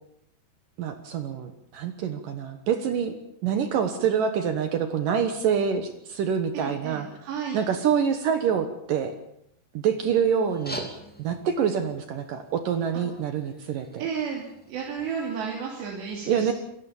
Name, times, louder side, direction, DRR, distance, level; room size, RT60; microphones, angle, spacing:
voice 1, 0.8-3.1 3.4-7.1 7.5-9.1 9.7-10.9 11.2-14.1 16.3-16.5, right 7 dB, 65° right, 8 dB, 2.5 m, -26 dB
voice 2, 6.5-7.7 14.0-16.5, right 6 dB, 90° right, -2 dB, 5.1 m, -33 dB
sound 1, 10.4-15.4, equal, 5° left, 1.1 m, -44 dB
28.0 x 15.0 x 7.2 m, 0.76 s
omnidirectional pair, 4.8 m